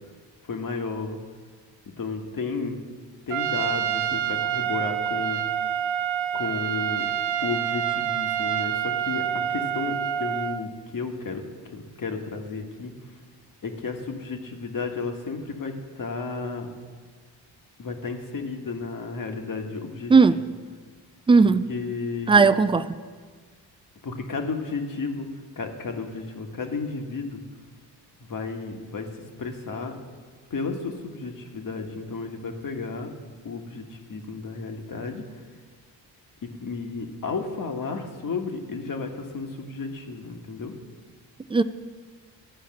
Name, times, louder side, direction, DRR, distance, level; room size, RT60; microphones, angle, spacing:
voice 1, 0.4-1.2 2.0-2.8 3.3-5.4 6.3-7.1 7.4-9.2 9.5-11.4 11.7-12.9 13.6-16.7 17.8-20.1 21.7-22.5 24.0-25.3 25.6-27.4 28.2-29.1 29.4-29.9 30.5-33.1 33.4-35.2 36.4-40.7, left 4 dB, 45° left, 4 dB, 1.6 m, -33 dB
Trumpet, 3.3-10.6, right 10 dB, 90° right, 0.7 m, -27 dB
voice 2, 21.3-21.7 22.3-22.8 41.5-41.6, right 4 dB, 15° right, 13 dB, 0.3 m, -16 dB
13.0 x 4.8 x 7.7 m, 1.6 s
cardioid pair, 65°, 45 cm